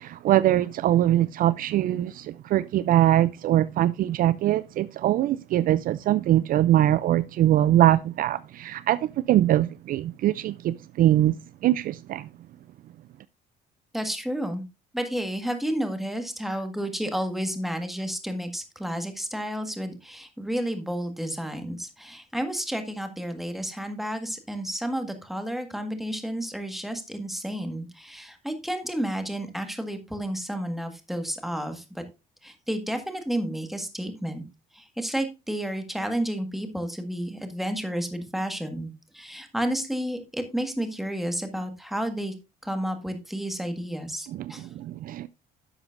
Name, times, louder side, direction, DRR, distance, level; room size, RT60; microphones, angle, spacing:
voice 1, 0.0-11.3 11.6-12.3 44.3-45.3, right 13 dB, 55° right, 0.4 m, -22 dB
voice 2, 13.9-14.6 14.9-32.0 32.4-34.4 34.7-42.3 42.6-44.7, equal, ahead, 1.6 m, -31 dB
11.0 x 7.1 x 2.5 m
cardioid pair, 110°, 17 cm